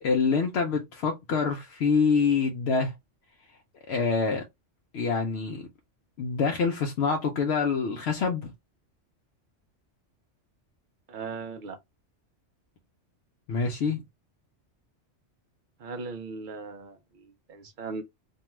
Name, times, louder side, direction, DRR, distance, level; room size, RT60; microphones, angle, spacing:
voice 1, 0.0-2.9 3.9-4.4 4.9-5.6 6.2-8.5 13.5-14.0, left 5 dB, 70° left, 0.8 m, -26 dB
voice 2, 11.1-11.8 15.8-18.0, right 4 dB, 55° right, 0.6 m, -38 dB
2.6 x 2.3 x 3.0 m
omnidirectional pair, 1.2 m